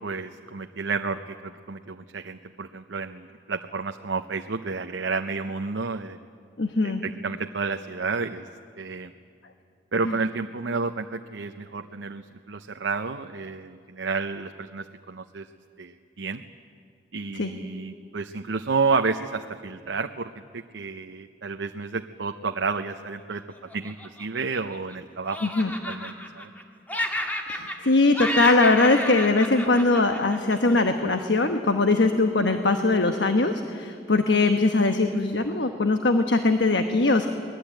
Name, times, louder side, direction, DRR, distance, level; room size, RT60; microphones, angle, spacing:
voice 1, 0.0-6.2 6.8-8.5 8.8-9.1 9.9-15.5 15.8-16.4 17.1-23.4 23.7-25.4 25.9-26.5, right 4 dB, 80° right, 6 dB, 0.7 m, -31 dB
voice 2, 6.6-7.0 10.1-10.2 17.3-17.5 25.4-25.7 27.5-37.3, left 3 dB, 80° left, 6 dB, 1.2 m, -21 dB
Laughter, 23.7-24.9 25.3-26.6 26.9-27.9 28.1-30.7, equal, 10° left, 1.8 m, -31 dB
23.5 x 20.0 x 9.0 m, 2.4 s
head